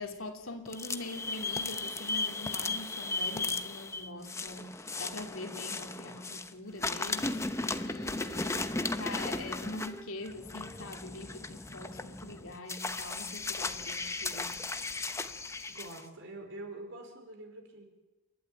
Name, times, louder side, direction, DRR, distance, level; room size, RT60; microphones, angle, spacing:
voice 1, 0.0-14.6, left 2 dB, 65° left, 4 dB, 2.9 m, -43 dB
sound 1, 0.7-6.5 6.8-16.0, left 3 dB, 15° left, 0.9 m, -36 dB
voice 2, 15.7-17.9, right 2 dB, 60° right, 4 dB, 4.7 m, -45 dB
29.0 x 12.0 x 9.1 m, 1.1 s
head